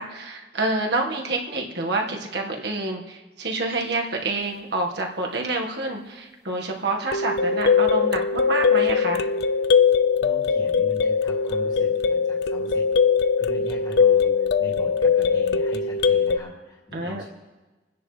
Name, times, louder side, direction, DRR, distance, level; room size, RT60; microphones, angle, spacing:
voice 1, 0.0-9.2 16.9-17.2, right 2 dB, 60° right, 1 dB, 1.6 m, -28 dB
sound 1, 7.1-16.4, left 6 dB, 60° left, 0.4 m, -21 dB
voice 2, 10.2-12.8 13.4-17.3, equal, 25° left, -3 dB, 2.6 m, -41 dB
28.0 x 10.0 x 3.3 m, 1.2 s
head